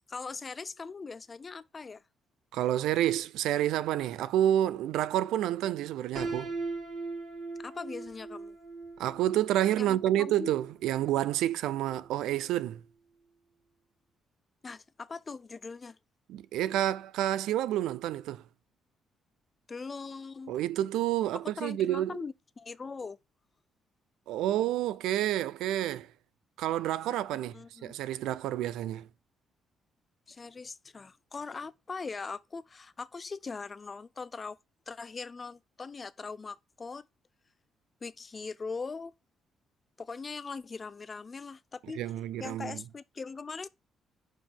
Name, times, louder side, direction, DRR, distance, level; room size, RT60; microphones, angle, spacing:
voice 1, 0.1-2.0 7.6-8.6 9.8-10.5 14.6-16.0 19.7-20.5 21.3-23.2 27.3-27.9 30.3-34.6 34.9-37.1 38.0-39.1 40.0-42.0 42.4-43.7, left 4 dB, 35° left, 0.5 m, -41 dB
voice 2, 2.5-6.5 9.0-12.8 16.3-18.4 20.5-22.2 24.3-26.1 26.6-27.6 27.8-29.1 42.0-42.8, right 12 dB, 90° right, 0.4 m, -29 dB
Piano, 6.1-12.0, right 3 dB, 45° right, 2.4 m, -40 dB
5.4 x 5.0 x 5.3 m
cardioid pair, 90°, 0 cm